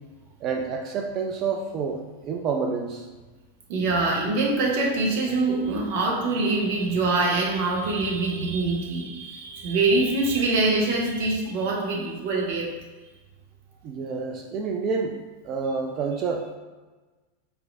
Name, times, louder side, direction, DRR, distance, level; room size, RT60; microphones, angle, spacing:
voice 1, 0.4-3.1 13.8-15.2 15.4-16.6, right 5 dB, 40° right, 2 dB, 0.4 m, -28 dB
voice 2, 3.7-12.7, right 3 dB, 55° right, -1 dB, 1.1 m, -24 dB
4.6 x 3.1 x 2.5 m, 1.2 s
hypercardioid pair, 95°, 0 cm